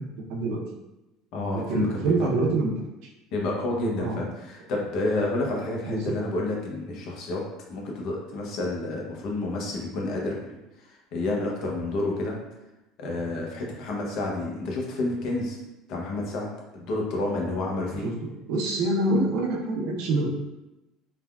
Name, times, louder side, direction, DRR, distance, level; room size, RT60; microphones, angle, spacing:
voice 1, 0.3-0.6 1.5-2.7 4.0-4.2 5.9-6.1 18.0-18.1 18.5-20.3, right 2 dB, 75° right, -1 dB, 0.6 m, -25 dB
voice 2, 1.3-2.3 3.3-7.4 7.7-10.4 11.1-12.3 13.0-15.6 15.9-18.1, left 2 dB, 60° left, -1 dB, 0.7 m, -29 dB
3.3 x 2.2 x 2.3 m, 0.96 s
supercardioid pair, 120°, 0 cm